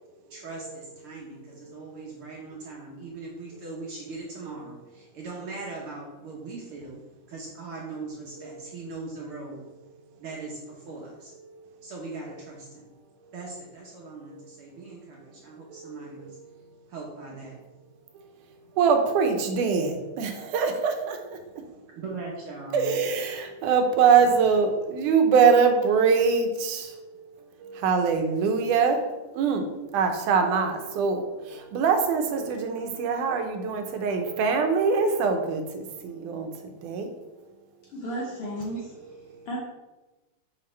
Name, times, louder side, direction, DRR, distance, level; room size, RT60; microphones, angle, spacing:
voice 1, 0.3-7.0 7.3-9.6 10.2-11.3 11.8-12.9 13.3-16.4 16.9-17.6 22.0-23.0, right 3 dB, 60° right, -2 dB, 1.5 m, -40 dB
voice 2, 18.8-21.2 22.7-26.9 27.7-29.0 29.4-29.6 29.9-31.2 31.7-35.6 36.0-36.5 36.8-37.1, right 5 dB, 80° right, 5 dB, 2.3 m, -23 dB
voice 3, 37.9-38.9 39.5-39.6, right 1 dB, 70° left, -3 dB, 1.4 m, -33 dB
6.8 x 6.1 x 3.2 m, 1.1 s
omnidirectional pair, 3.6 m